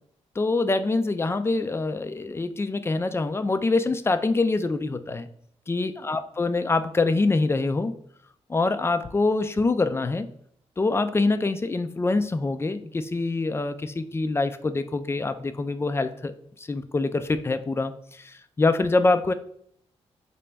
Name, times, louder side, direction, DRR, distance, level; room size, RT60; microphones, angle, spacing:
voice 1, 0.4-5.3 5.7-7.9 8.5-10.3 10.8-16.3 16.6-19.3, left 3 dB, 20° left, 10 dB, 0.3 m, -25 dB
3.9 x 2.2 x 3.3 m, 0.65 s
cardioid pair, 70°, 11 cm